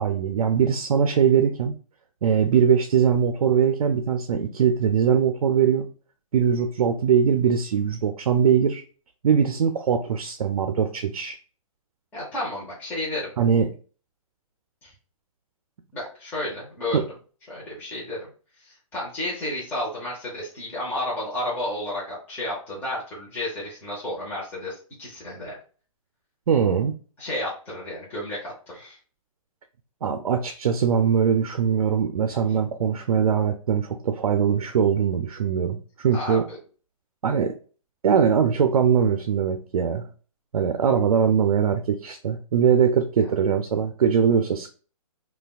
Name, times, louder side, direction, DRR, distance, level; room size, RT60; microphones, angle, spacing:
voice 1, 0.0-1.7 2.2-5.9 6.3-8.8 9.2-11.4 13.4-13.7 16.9-17.1 26.5-26.9 30.0-36.4 37.2-37.5 38.0-40.1 40.5-44.7, right 7 dB, 85° right, 7 dB, 0.4 m, -21 dB
voice 2, 12.1-13.3 14.8-14.9 15.9-17.0 17.5-18.3 18.6-25.5 27.2-29.0 36.1-36.6, left 1 dB, 10° left, -7 dB, 0.7 m, -32 dB
3.3 x 2.3 x 2.3 m, 0.39 s
hypercardioid pair, 150°, 18 cm